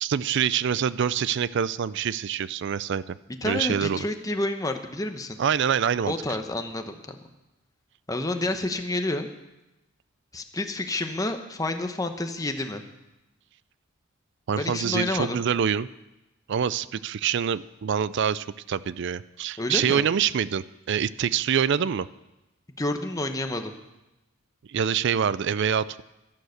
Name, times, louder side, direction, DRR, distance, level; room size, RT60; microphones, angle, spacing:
voice 1, 0.0-3.2 3.4-4.1 5.4-6.1 14.5-15.9 16.5-22.1 24.7-26.0, right 8 dB, 60° right, 18 dB, 0.4 m, -25 dB
voice 2, 3.4-5.4 6.1-7.1 8.1-9.3 10.3-12.8 14.6-15.4 19.6-20.1 22.8-23.7, left 2 dB, 15° left, 6 dB, 0.9 m, -29 dB
12.0 x 11.0 x 6.5 m, 0.97 s
head